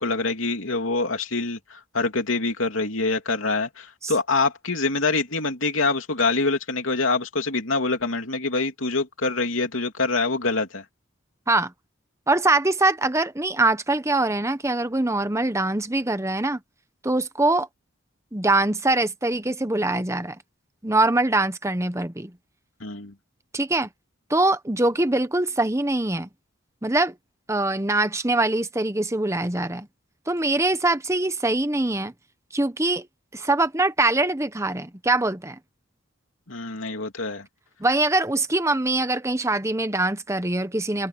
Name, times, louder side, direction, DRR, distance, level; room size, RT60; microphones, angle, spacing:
voice 1, 0.0-10.8 22.8-23.1 36.5-37.5, left 3 dB, 80° left, 3.0 m, -25 dB
voice 2, 12.3-16.6 17.0-17.7 18.3-20.4 20.8-22.3 23.5-23.9 24.3-26.3 26.8-27.2 27.5-29.9 30.3-32.1 32.5-33.1 33.3-35.6 37.8-41.1, right 2 dB, 15° right, 1.0 m, -23 dB
head